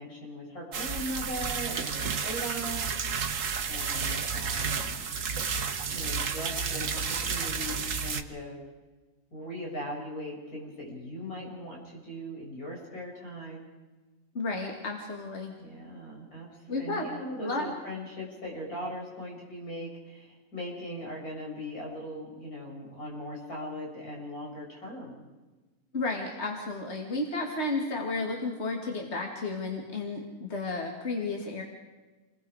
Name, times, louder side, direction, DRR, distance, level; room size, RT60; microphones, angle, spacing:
voice 1, 0.0-2.8 3.3-5.1 5.9-8.7 9.3-13.7 15.6-25.2, equal, 85° left, -3 dB, 7.1 m, -39 dB
sound 1, 0.7-8.2, right 6 dB, 65° right, 1.5 m, -31 dB
voice 2, 14.3-15.5 16.7-17.1 17.4-17.7 25.9-31.6, left 2 dB, 50° left, 0 dB, 2.6 m, -32 dB
29.0 x 21.0 x 5.0 m, 1.2 s
omnidirectional pair, 1.5 m